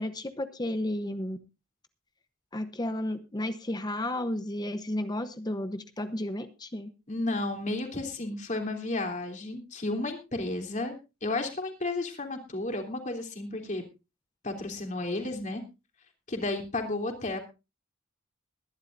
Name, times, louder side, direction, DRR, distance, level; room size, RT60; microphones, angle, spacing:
voice 1, 0.0-1.4 2.5-6.9, left 1 dB, 20° left, 10 dB, 0.9 m, -33 dB
voice 2, 7.1-10.9 11.2-13.8 14.4-15.6 16.3-17.4, left 2 dB, 40° left, 4 dB, 3.1 m, -32 dB
21.5 x 11.5 x 2.6 m, 0.28 s
head